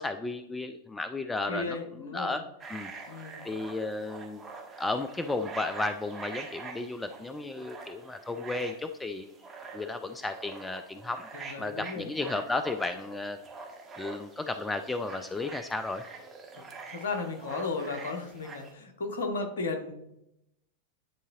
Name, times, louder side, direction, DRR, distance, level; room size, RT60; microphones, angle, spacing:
voice 1, 0.0-2.9 3.4-4.4 4.8-9.3 9.7-11.3 11.6-13.4 14.0-16.0, left 3 dB, 10° left, 9 dB, 0.4 m, -34 dB
voice 2, 1.5-2.3 3.1-3.5 11.3-12.1 16.5-16.6 16.9-19.9, left 3 dB, 60° left, 4 dB, 1.1 m, -35 dB
sound 1, 2.6-18.7, right 4 dB, 20° right, 1.2 m, -45 dB
9.9 x 3.9 x 2.8 m, 0.82 s
figure-of-eight pair, 90°, 0 cm